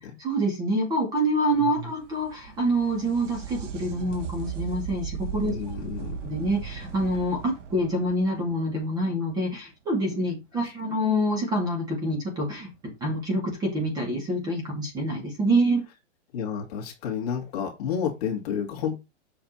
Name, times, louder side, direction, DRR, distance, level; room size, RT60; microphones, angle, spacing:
voice 1, 0.2-5.5 6.2-12.7 13.0-15.8, right 1 dB, 10° right, 2 dB, 2.4 m, -26 dB
voice 2, 1.6-1.9 5.5-6.2 10.5-10.7 16.3-19.0, left 7 dB, 35° left, 0 dB, 2.6 m, -31 dB
sound 1, 1.7-9.3 12.7-12.8 13.9-14.0, right 7 dB, 80° right, 2.8 m, -37 dB
7.9 x 5.9 x 4.3 m, 0.24 s
hypercardioid pair, 175°, 36 cm